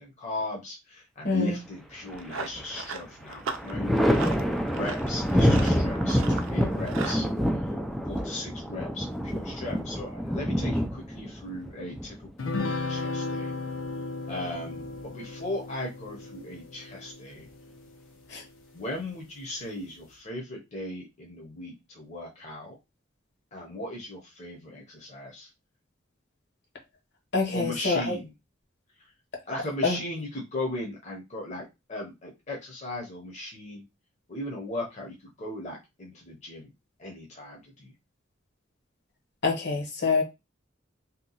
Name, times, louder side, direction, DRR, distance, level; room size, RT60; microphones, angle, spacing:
voice 1, 0.0-4.3 4.7-7.3 8.1-13.5 14.3-14.9 15.1-17.5 18.7-22.8 23.5-25.5 27.5-28.3 29.0-29.1 29.5-33.8 34.3-36.7 37.0-37.9, left 1 dB, 35° left, 0.8 m, -37 dB
voice 2, 1.2-1.6 18.3-18.4 27.3-28.2 29.8-30.0 39.4-40.2, left 4 dB, 60° left, 1.0 m, -26 dB
Run, 1.9-7.2, right 5 dB, 80° right, 0.5 m, -39 dB
Thunder, 2.1-2.9 3.2-12.8 14.3-15.1, equal, ahead, 0.3 m, -27 dB
sound 1, 12.4-18.0, left 3 dB, 85° left, 0.7 m, -35 dB
2.8 x 2.2 x 3.9 m
head